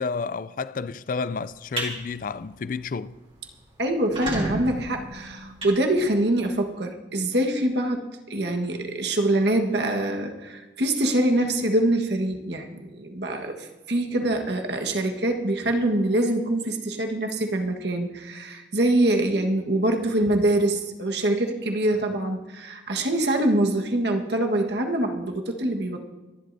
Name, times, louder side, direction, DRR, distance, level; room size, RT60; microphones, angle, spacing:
voice 1, 0.0-3.2, left 4 dB, 45° left, 0.4 m, -30 dB
sound 1, 1.5-1.9 2.4-2.6 3.0-3.1 3.3-3.4 3.9-6.5, right 2 dB, 30° right, 2.9 m, -32 dB
voice 2, 3.8-26.0, right 1 dB, 60° right, 1.5 m, -24 dB
25.0 x 11.0 x 2.7 m
head